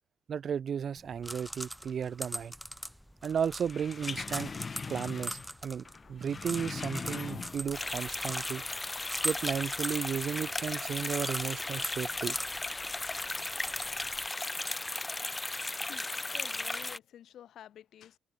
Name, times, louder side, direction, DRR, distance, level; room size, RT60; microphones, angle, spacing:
voice 1, 0.3-2.5 3.2-4.5 4.9-8.6 9.2-12.4, right 7 dB, 55° right, 0.6 m, -34 dB
sound 1, 1.0-14.3, equal, 5° right, 4.0 m, -42 dB
sound 2, 3.6-5.6 5.9-7.9 8.2-8.3, left 5 dB, 35° left, 0.6 m, -40 dB
sound 3, 7.7-17.0, left 2 dB, 15° left, 3.1 m, -35 dB
voice 2, 15.5-18.2, left 10 dB, 70° left, 8.0 m, -51 dB
cardioid pair, 90°, 0 cm